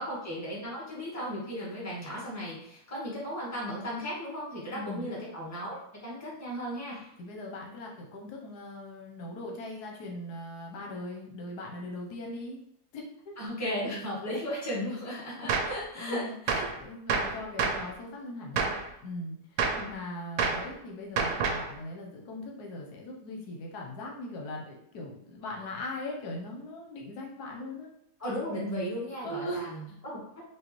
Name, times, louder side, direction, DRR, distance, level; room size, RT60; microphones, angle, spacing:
voice 1, 0.0-7.1 13.4-16.6 19.7-19.9 28.2-29.7 30.0-30.2, equal, 10° left, -7 dB, 1.1 m, -35 dB
voice 2, 4.7-5.1 7.2-12.6 12.9-13.3 15.9-18.7 19.0-27.9 29.2-30.0, left 1 dB, 85° left, 0 dB, 1.3 m, -40 dB
Gunshot gunfire, 15.5-15.8 16.5-16.8 17.1-17.9 18.6-18.9 19.6-19.9 20.4-20.7 21.2-21.7, right 5 dB, 70° right, 1.0 m, -28 dB
4.9 x 2.2 x 3.0 m, 0.71 s
omnidirectional pair, 1.7 m